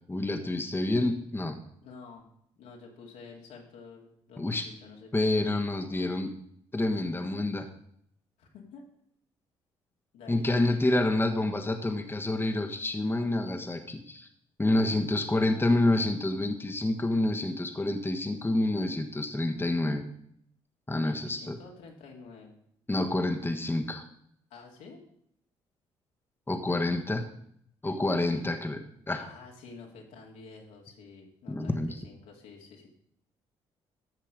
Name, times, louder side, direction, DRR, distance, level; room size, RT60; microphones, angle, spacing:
voice 1, 0.1-1.5 4.4-4.6 5.1-6.3 6.7-7.7 10.3-14.3 14.6-20.0 20.9-21.6 22.9-24.0 26.5-27.2 27.8-29.2 31.5-32.0, left 2 dB, 15° left, 3 dB, 1.4 m, -28 dB
voice 2, 1.8-2.3 2.5-5.3 8.4-8.8 10.1-10.4 10.9-11.0 21.0-22.6 24.5-25.0 26.6-27.0 29.1-32.9, left 4 dB, 75° left, 0 dB, 2.5 m, -49 dB
14.0 x 5.9 x 5.1 m, 0.69 s
hypercardioid pair, 50°, 13 cm